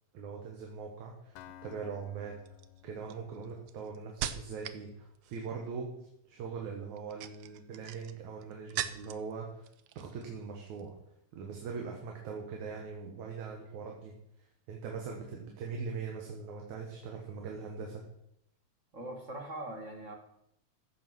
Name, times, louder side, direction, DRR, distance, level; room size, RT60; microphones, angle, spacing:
voice 1, 0.1-1.3 1.6-2.3 2.8-9.7 10.0-10.9 11.3-14.1 14.7-18.0, right 5 dB, 65° right, 1 dB, 2.7 m, -41 dB
Acoustic guitar, 1.4-5.2, left 11 dB, 75° left, 1.9 m, -56 dB
sound 1, 1.4-1.7 2.5-4.9 5.1-5.7 6.9-9.3 9.6-10.3 10.6-10.8, right 11 dB, 85° right, 1.4 m, -41 dB
voice 2, 18.9-20.1, right 1 dB, 40° right, 4 dB, 1.1 m, -41 dB
15.0 x 6.8 x 6.3 m, 0.76 s
omnidirectional pair, 3.7 m